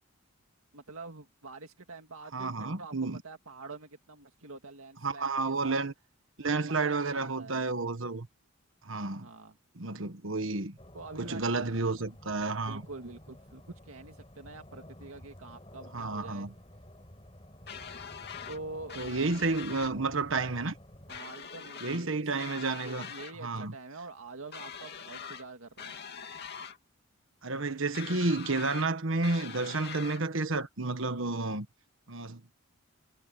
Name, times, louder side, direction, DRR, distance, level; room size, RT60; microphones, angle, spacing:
voice 1, 0.7-3.0 3.2-5.9 6.5-7.7 9.2-9.6 10.9-11.4 12.7-16.5 18.5-19.0 21.1-22.3 22.8-26.0, right 3 dB, 90° right, 2.1 m, -46 dB
voice 2, 2.3-3.2 5.0-5.9 6.4-8.3 8.8-9.3 9.8-10.8 11.2-12.8 15.9-16.5 19.0-20.7 21.8-23.1 23.4-23.7 27.4-31.7 32.1-32.4, right 3 dB, 65° right, 1.4 m, -31 dB
sound 1, 10.8-21.2, left 1 dB, 25° left, 7.7 m, -52 dB
sound 2, 17.7-18.6 18.9-19.9 21.1-22.1 22.4-23.3 24.5-25.5 25.8-26.8 27.9-28.9 29.2-30.2, left 6 dB, 50° left, 2.7 m, -43 dB
head